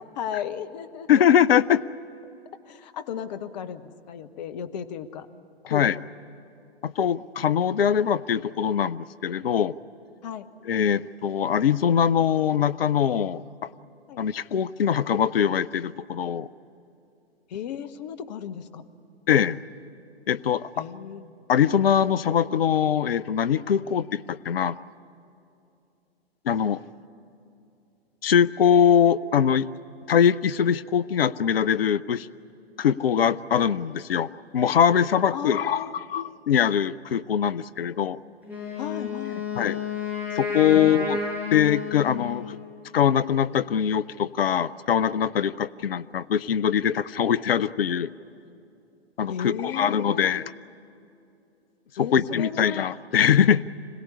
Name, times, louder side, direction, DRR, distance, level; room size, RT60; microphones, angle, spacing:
voice 1, 0.1-1.3 2.7-5.3 5.6-6.0 10.2-10.5 14.1-14.2 17.5-18.8 20.8-21.3 35.3-36.0 38.8-39.4 40.7-41.6 49.3-50.5 52.0-52.9, left 8 dB, 40° left, 10 dB, 1.1 m, -35 dB
voice 2, 1.1-1.8 5.7-6.0 6.8-9.8 10.7-13.7 14.2-16.5 19.3-19.6 20.3-20.7 21.5-24.8 26.5-26.8 28.2-29.7 30.1-32.3 32.8-38.2 39.6-39.8 40.4-41.2 41.5-42.6 42.9-48.1 49.2-50.5 52.0-53.6, left 8 dB, 65° left, 16 dB, 0.6 m, -22 dB
Wind instrument woodwind instrument, 38.4-42.6, left 4 dB, 5° right, 6.9 m, -31 dB
26.5 x 17.5 x 9.8 m, 2.7 s
figure-of-eight pair, 110°, 32 cm